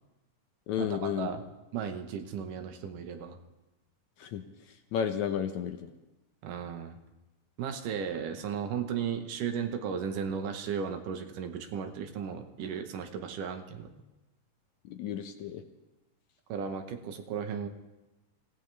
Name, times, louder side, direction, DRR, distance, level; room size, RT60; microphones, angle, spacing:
voice 1, 0.7-1.3 4.2-5.9 14.8-15.6, left 8 dB, 75° left, 6 dB, 1.9 m, -33 dB
voice 2, 1.7-3.4 6.4-7.0 7.6-13.9 16.5-17.7, right 7 dB, 75° right, 6 dB, 2.6 m, -35 dB
25.5 x 16.5 x 3.4 m, 1.1 s
omnidirectional pair, 3.8 m